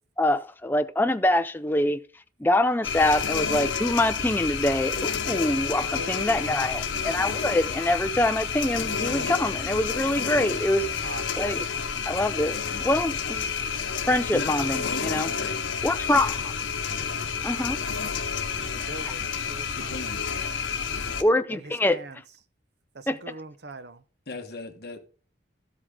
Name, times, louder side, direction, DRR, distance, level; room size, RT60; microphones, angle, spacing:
voice 1, 0.2-2.0 2.4-10.9 11.4-11.6 12.1-13.5 14.1-15.3 15.8-16.4 17.4-17.8 19.0-19.1 21.2-22.0 23.1-23.2, left 1 dB, 10° left, 0.4 m, -25 dB
sound 1, 2.8-21.2, left 6 dB, 85° left, 1.0 m, -30 dB
voice 2, 6.0-7.1 11.0-11.2 18.6-20.0 21.5-22.2 22.9-24.0, right 2 dB, 55° right, 0.7 m, -42 dB
voice 3, 14.3-15.7 19.7-20.2 24.3-25.0, left 2 dB, 55° left, 1.3 m, -37 dB
12.5 x 7.9 x 3.7 m
head